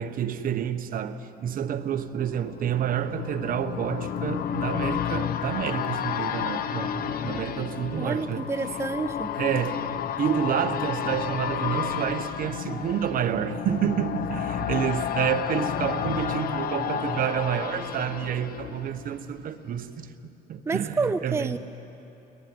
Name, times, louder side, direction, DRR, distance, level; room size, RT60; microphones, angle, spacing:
voice 1, 0.0-8.5 9.4-20.1 20.5-21.6, right 9 dB, 55° right, 1.2 m, -29 dB
sound 1, 1.6-19.4 19.8-19.9, left 9 dB, 60° left, 1.1 m, -31 dB
voice 2, 7.9-9.3 20.7-21.6, right 4 dB, 15° right, 0.6 m, -29 dB
22.0 x 21.5 x 9.6 m
cardioid pair, 110°, 17 cm